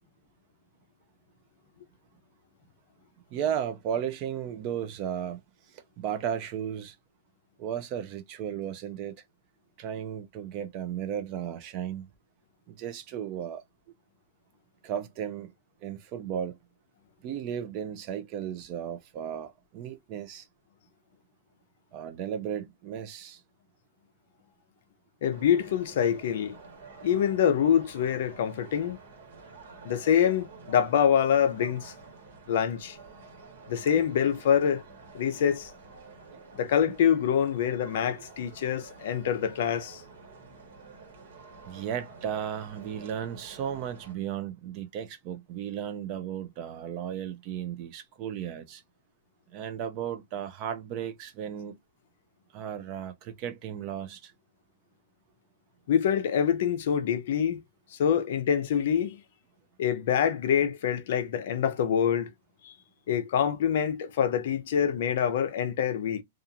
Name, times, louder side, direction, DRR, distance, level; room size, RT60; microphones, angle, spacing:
voice 1, 3.3-5.4 5.7-7.0 7.6-9.2 9.8-12.1 12.7-13.6 14.8-15.5 15.8-16.6 17.2-20.5 21.9-23.4 36.3-36.4 41.7-48.8 49.5-51.8 52.5-54.3, right 9 dB, 30° right, 0.4 m, -35 dB
voice 2, 25.2-26.6 27.0-29.0 29.8-31.9 32.5-33.0 33.7-34.8 35.1-35.7 36.6-40.0 55.9-57.6 57.9-59.2 59.8-62.3 62.6-62.7 63.1-66.2, left 8 dB, 50° left, 0.5 m, -25 dB
sound 1, 25.3-44.1, right 4 dB, 60° right, 1.2 m, -49 dB
2.5 x 2.4 x 2.7 m
supercardioid pair, 175°, 0 cm